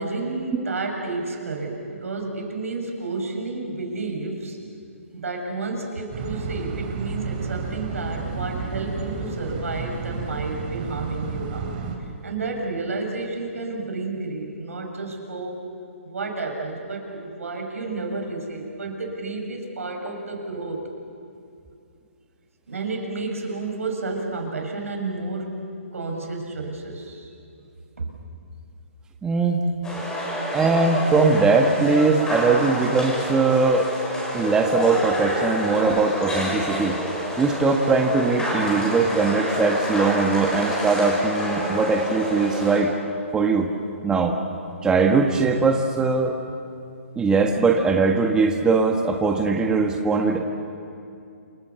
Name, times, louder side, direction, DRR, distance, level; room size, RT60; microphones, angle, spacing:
voice 1, 0.0-4.6 5.1-11.7 12.2-15.6 16.0-20.8 22.7-25.6 25.9-27.3 28.0-28.1 29.9-30.1, right 3 dB, 80° right, 2 dB, 6.6 m, -31 dB
sound 1, 6.1-12.0, right 5 dB, 35° right, 3.7 m, -31 dB
voice 2, 29.2-29.6 30.5-33.9 34.3-37.0 37.4-42.9 43.3-43.7 44.0-44.4 44.8-46.4 47.1-50.4, right 4 dB, 10° right, 3 dB, 1.5 m, -20 dB
sound 2, 29.8-42.8, equal, 10° left, 6.1 m, -28 dB
28.0 x 25.0 x 7.1 m, 2.5 s
hypercardioid pair, 140°, 7 cm